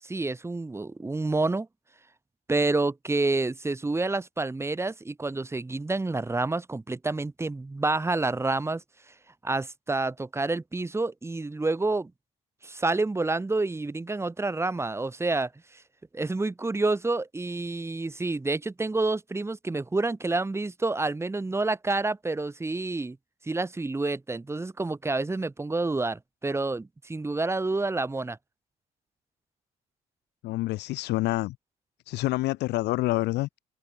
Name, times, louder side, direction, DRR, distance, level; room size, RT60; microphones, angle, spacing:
voice 1, 0.0-1.7 2.5-9.1 9.4-12.1 12.6-15.8 16.1-23.2 23.4-28.4, right 3 dB, 15° right, 5.8 m, -28 dB
voice 2, 30.4-31.5 32.1-33.5, left 18 dB, 85° left, 6.4 m, -27 dB
open air
cardioid pair, 110°, 17 cm